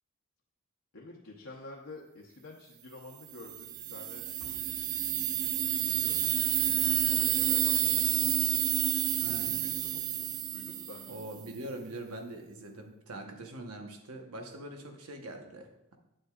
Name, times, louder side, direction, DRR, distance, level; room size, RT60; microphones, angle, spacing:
voice 1, 0.9-5.0 5.6-6.8 7.1-8.3 9.2-11.2 13.3-13.4, left 2 dB, 65° left, -2 dB, 0.9 m, -50 dB
sound 1, 3.4-11.3, right 12 dB, 35° right, 0.3 m, -29 dB
sound 2, 4.4-4.8 5.4-5.5 5.8-5.9 6.2-6.3 6.8-7.3 7.9-8.2 8.5-8.6 8.8-9.1 9.6-9.7 9.9-10.1 10.4-10.5 10.7-10.8, left 1 dB, 15° left, 1.5 m, -56 dB
voice 2, 9.2-9.6 11.1-16.0, right 1 dB, 75° right, 3 dB, 1.1 m, -43 dB
8.6 x 7.7 x 2.4 m, 0.85 s
head